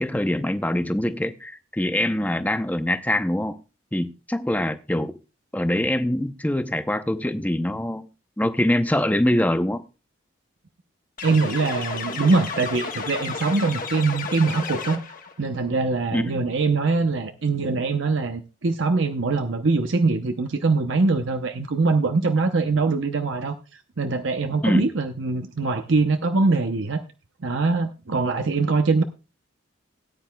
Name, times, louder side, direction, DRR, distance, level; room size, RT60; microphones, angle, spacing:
voice 1, 0.0-3.6 3.9-5.2 5.5-8.1 8.4-9.8 16.1-16.5 24.6-24.9, left 1 dB, 10° left, 0.6 m, -24 dB
sound 1, 11.2-15.3, left 4 dB, 40° left, 1.3 m, -32 dB
voice 2, 11.2-15.0 15.4-23.6 24.0-27.0 27.4-29.0, right 3 dB, 75° right, 0.8 m, -23 dB
18.0 x 9.5 x 2.3 m
head